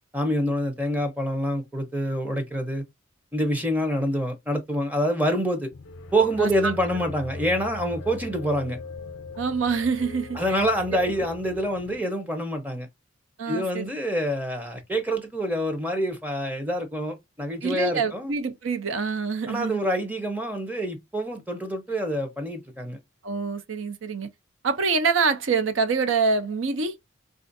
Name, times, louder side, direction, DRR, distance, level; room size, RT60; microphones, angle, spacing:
voice 1, 0.1-2.8 3.3-5.7 6.1-8.8 10.3-12.9 13.5-18.3 19.5-23.0, equal, 10° right, 0.6 m, -26 dB
sound 1, 5.7-12.0, left 3 dB, 80° left, 0.5 m, -40 dB
voice 2, 6.4-6.7 9.4-10.6 10.9-11.1 13.4-13.9 17.6-19.8 23.2-24.3 24.6-26.9, right 4 dB, 80° right, 0.6 m, -26 dB
4.3 x 2.4 x 2.5 m
head